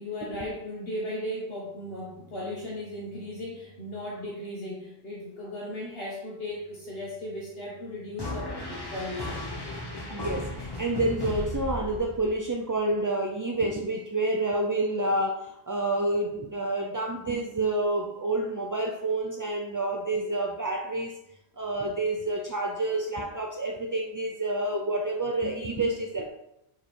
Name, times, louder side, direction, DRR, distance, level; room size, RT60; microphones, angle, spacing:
voice 1, 0.0-9.4, left 1 dB, 65° left, -6 dB, 1.8 m, -36 dB
sound 1, 8.2-12.5, left 2 dB, 25° left, 1.0 m, -35 dB
voice 2, 10.1-21.1 21.6-26.3, right 2 dB, 30° right, 0 dB, 0.3 m, -28 dB
5.0 x 4.7 x 4.5 m, 0.84 s
omnidirectional pair, 1.1 m